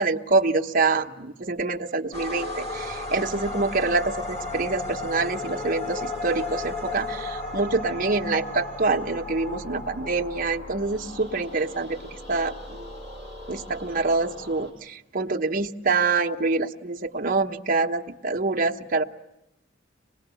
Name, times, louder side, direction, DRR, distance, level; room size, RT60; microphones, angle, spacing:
voice 1, 0.0-13.0 13.5-19.0, right 3 dB, 45° right, 4 dB, 1.1 m, -26 dB
sound 1, 2.1-14.7, left 2 dB, 35° left, 4.8 m, -35 dB
25.5 x 20.0 x 9.0 m, 0.94 s
head